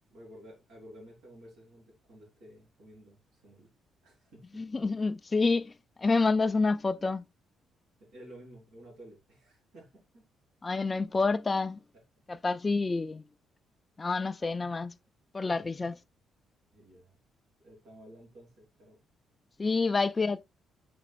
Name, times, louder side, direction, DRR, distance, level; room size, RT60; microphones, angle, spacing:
voice 1, 0.1-3.7 4.0-4.6 8.0-10.3 15.6-15.7 16.7-17.2 17.6-19.0, equal, 90° right, 3.9 m, -53 dB
voice 2, 4.5-5.7 6.0-7.2 10.6-11.8 12.3-13.2 14.0-14.9 15.3-16.0 19.6-20.4, left 3 dB, 25° left, 0.3 m, -28 dB
6.7 x 6.0 x 2.4 m
cardioid pair, 90°, 0 cm